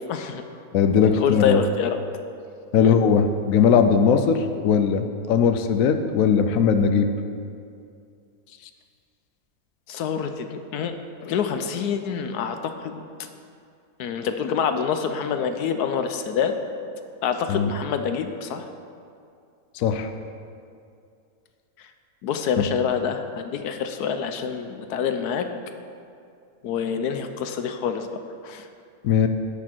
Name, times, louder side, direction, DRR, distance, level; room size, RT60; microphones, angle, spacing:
voice 1, 0.1-0.4 1.2-2.0 2.8-3.0 9.9-10.9 11.2-13.0 14.0-16.5 17.2-18.7 22.2-25.5 26.6-28.1 28.4-28.7, left 7 dB, 80° left, 7 dB, 1.2 m, -26 dB
voice 2, 0.7-1.6 2.7-7.1 17.5-17.7 19.8-20.1 22.6-22.7 29.0-29.3, left 6 dB, 65° left, 7 dB, 1.0 m, -19 dB
17.0 x 6.2 x 4.5 m, 2.4 s
omnidirectional pair, 1.7 m